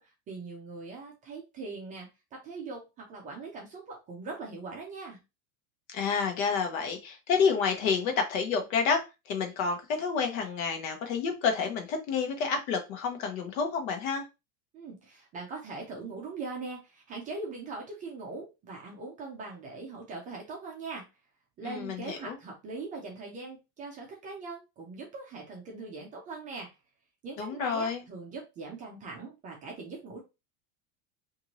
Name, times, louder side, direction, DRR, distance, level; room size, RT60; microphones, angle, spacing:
voice 1, 0.0-5.2 14.7-21.1 21.6-26.7 27.2-30.2, right 3 dB, 20° right, -1 dB, 0.4 m, -41 dB
voice 2, 5.9-9.0 9.3-14.2 21.6-22.4 27.4-28.0, left 5 dB, 65° left, 5 dB, 1.0 m, -29 dB
2.6 x 2.6 x 2.9 m, 0.26 s
supercardioid pair, 155°, 43 cm